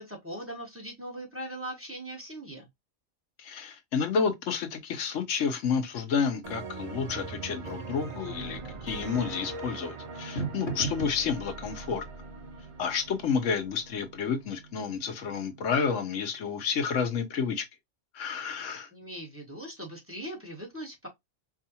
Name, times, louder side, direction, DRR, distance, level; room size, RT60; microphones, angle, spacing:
voice 1, 0.0-2.7 18.9-21.1, right 1 dB, 10° right, 1.3 m, -40 dB
voice 2, 3.4-12.0 12.8-17.7 18.1-18.9, left 6 dB, 90° left, 1.2 m, -30 dB
sound 1, 5.9-16.6, right 3 dB, 70° left, 1.3 m, -43 dB
sound 2, 6.4-14.1, right 3 dB, 40° right, 0.4 m, -41 dB
4.7 x 2.5 x 2.8 m
omnidirectional pair, 1.2 m